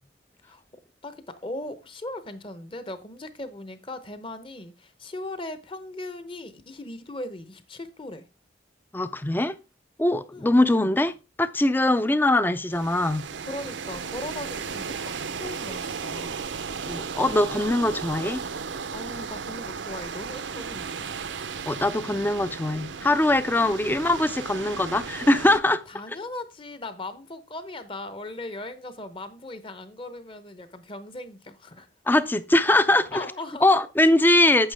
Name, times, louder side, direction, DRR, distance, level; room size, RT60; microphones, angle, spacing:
voice 1, 1.0-8.2 10.3-10.9 12.1-12.2 13.4-16.5 18.9-21.1 23.5-23.8 25.6-31.9 33.1-33.7, left 2 dB, 25° left, 0.8 m, -38 dB
voice 2, 8.9-9.5 10.0-11.1 11.4-13.2 16.9-18.4 21.7-25.8 32.1-33.3 33.6-34.7, left 1 dB, 10° left, 0.4 m, -22 dB
sound 1, 12.7-25.6, right 5 dB, 75° right, 0.7 m, -35 dB
8.9 x 7.3 x 3.4 m
head